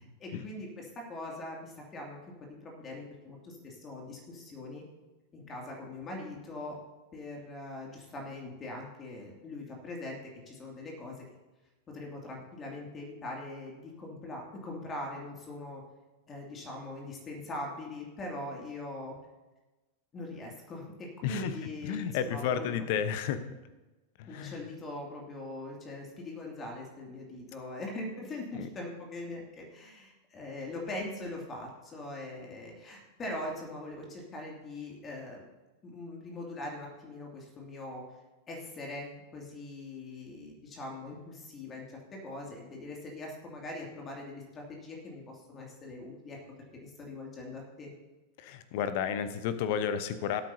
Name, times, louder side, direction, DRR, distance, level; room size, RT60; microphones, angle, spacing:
voice 1, 0.2-4.8 5.3-6.8 7.1-10.2 10.5-11.1 11.9-15.8 16.3-19.2 20.1-22.8 24.3-35.4 35.8-38.0 38.5-46.4 46.8-47.9, left 2 dB, 25° left, -1 dB, 2.4 m, -42 dB
voice 2, 21.2-21.6 21.8-23.4 24.2-24.6 28.5-28.7 48.4-50.4, left 8 dB, 50° left, 12 dB, 0.9 m, -32 dB
18.5 x 8.6 x 2.8 m, 1.1 s
figure-of-eight pair, 90°, 0 cm